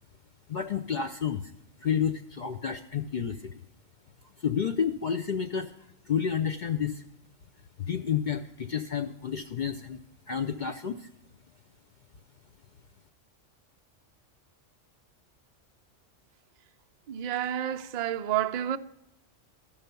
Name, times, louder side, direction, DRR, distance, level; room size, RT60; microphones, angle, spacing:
voice 1, 0.5-1.5 1.8-3.5 4.4-5.7 6.1-7.0 7.8-11.1, left 7 dB, 60° left, 0.5 m, -30 dB
voice 2, 17.1-18.8, right 11 dB, 75° right, 0.3 m, -29 dB
13.0 x 5.5 x 6.7 m
omnidirectional pair, 1.3 m